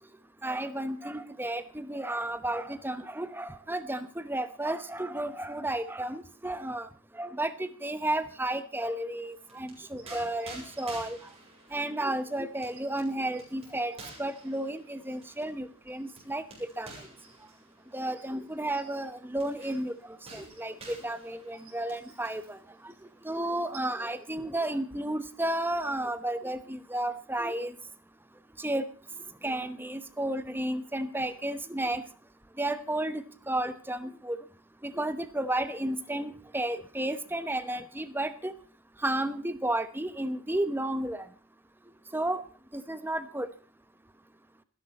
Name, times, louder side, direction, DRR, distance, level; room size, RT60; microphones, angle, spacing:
voice 1, 0.4-6.9 7.1-11.2 11.7-16.4 16.8-16.9 17.9-22.6 22.8-22.9 23.2-27.7 28.6-28.9 29.4-32.0 32.6-34.4 34.8-38.5 39.0-41.3 42.1-42.4 42.7-43.5, right 1 dB, 10° right, 12 dB, 0.9 m, -32 dB
sound 1, 9.3-22.6 22.9-23.1 23.4-24.2, right 3 dB, 30° right, 7.6 m, -51 dB
27.5 x 11.0 x 4.2 m, 0.37 s
head